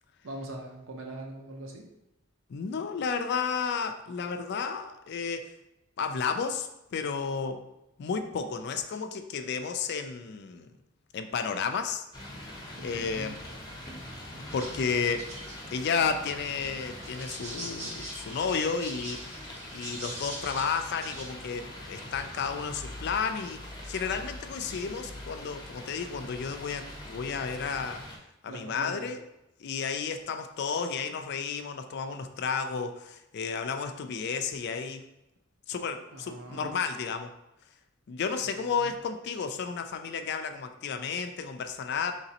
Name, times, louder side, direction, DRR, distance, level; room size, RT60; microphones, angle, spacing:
voice 1, 0.2-1.9 12.8-13.4 28.5-29.1 36.1-36.8 38.8-39.0, right 1 dB, 75° right, 1 dB, 0.7 m, -42 dB
voice 2, 2.5-5.5 6.0-7.6 8.0-10.7 11.1-12.0 12.8-13.4 14.5-15.3 15.7-19.2 19.7-28.0 28.4-29.2 29.6-35.0 35.7-37.3 38.1-42.1, left 5 dB, 55° left, 7 dB, 0.3 m, -32 dB
sound 1, 12.1-28.2, left 1 dB, 20° left, 0.7 m, -43 dB
sound 2, 14.5-21.3, right 1 dB, 35° right, 0.7 m, -43 dB
4.0 x 3.3 x 2.8 m, 0.89 s
head